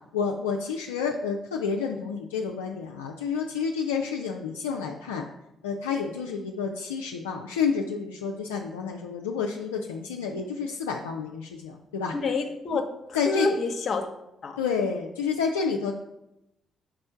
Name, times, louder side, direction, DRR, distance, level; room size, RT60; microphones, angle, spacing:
voice 1, 0.1-5.3 5.6-12.1 13.1-13.5 14.6-16.0, left 5 dB, 80° left, 1 dB, 0.3 m, -29 dB
voice 2, 12.1-14.1 14.4-14.6, left 3 dB, 50° left, 6 dB, 0.8 m, -28 dB
5.1 x 4.3 x 5.5 m, 0.87 s
figure-of-eight pair, 40°, 0 cm